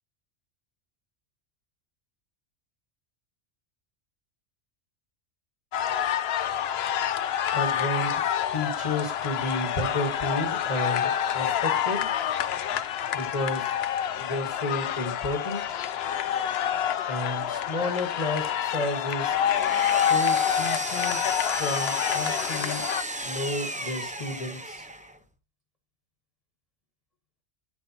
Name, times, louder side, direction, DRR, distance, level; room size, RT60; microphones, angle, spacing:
sound 1, 5.7-23.0, left 9 dB, 70° left, 0.8 m, -27 dB
voice 1, 7.5-8.1 8.5-12.1 13.1-13.7 14.2-15.8 17.1-19.4 19.9-21.3 21.6-22.9 23.2-24.9, left 1 dB, 35° left, 4 dB, 1.4 m, -32 dB
Power tool, 19.1-25.2, right 1 dB, 10° right, 0.6 m, -34 dB
12.0 x 5.4 x 2.8 m, 0.29 s
omnidirectional pair, 1.1 m